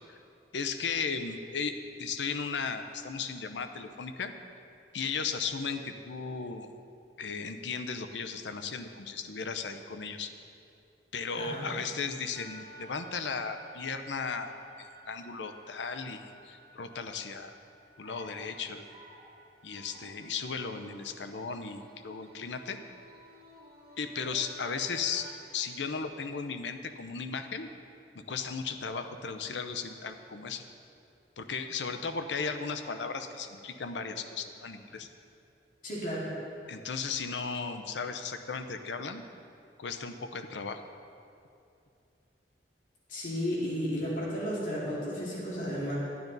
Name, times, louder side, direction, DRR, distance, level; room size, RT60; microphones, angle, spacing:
voice 1, 0.5-4.3 4.9-6.8 7.2-10.3 11.1-17.5 18.0-18.8 19.6-22.8 24.0-25.3 25.5-27.7 28.1-30.6 31.4-35.1 36.7-39.2 39.8-40.8, left 5 dB, 90° left, 8 dB, 0.7 m, -36 dB
voice 2, 11.4-11.7 35.8-36.3 43.1-45.9, equal, 50° left, -6 dB, 2.4 m, -33 dB
sound 1, 12.3-25.3, right 1 dB, 60° right, 2.3 m, -53 dB
12.0 x 9.5 x 4.0 m, 2.6 s
head